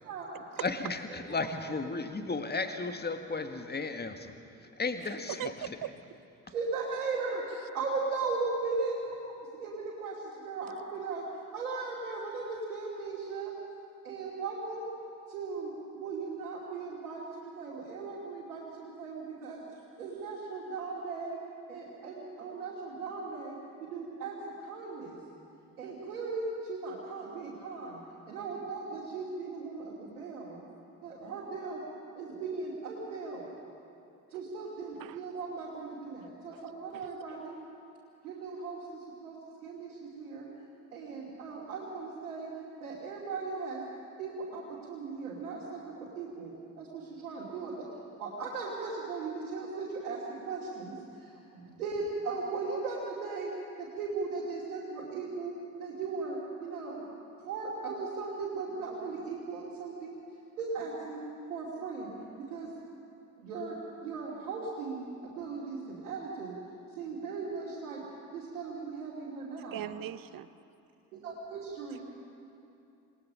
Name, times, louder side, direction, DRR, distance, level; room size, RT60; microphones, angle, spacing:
voice 1, 0.0-0.4 6.5-7.4 7.7-11.2 11.5-13.5 14.0-14.9 15.3-19.6 20.0-21.4 21.7-25.2 25.8-28.0 28.3-30.6 31.0-31.8 32.1-33.5 34.3-37.6 38.2-39.4 39.6-40.5 40.9-42.5 42.8-43.8 44.2-46.5 46.8-47.9 48.2-53.5 53.8-55.5 55.8-57.0 57.4-60.2 60.6-62.7 63.4-63.8 64.0-66.6 67.0-68.0 68.3-69.9 71.2-72.0, right 4 dB, 80° right, -6 dB, 2.7 m, -37 dB
voice 2, 0.6-4.3 4.8-5.8, left 3 dB, 20° left, 7 dB, 1.7 m, -34 dB
voice 3, 5.4-5.9 35.0-35.2 36.9-37.1 69.7-70.5, right 12 dB, 50° right, 16 dB, 0.8 m, -39 dB
27.0 x 19.5 x 5.7 m, 2.7 s
figure-of-eight pair, 40°, 44 cm